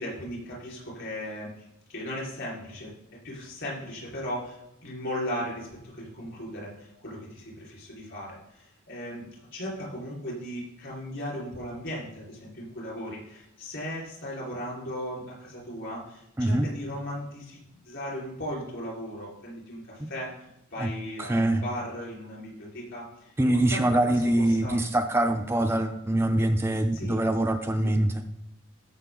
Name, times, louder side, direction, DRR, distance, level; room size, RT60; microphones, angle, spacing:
voice 1, 0.0-2.9 3.2-24.8 26.9-27.2 27.8-28.0, equal, 60° left, -4 dB, 4.3 m, -37 dB
voice 2, 21.2-21.6 23.4-28.2, right 1 dB, 10° right, 6 dB, 0.4 m, -24 dB
14.0 x 6.0 x 3.8 m, 0.81 s
head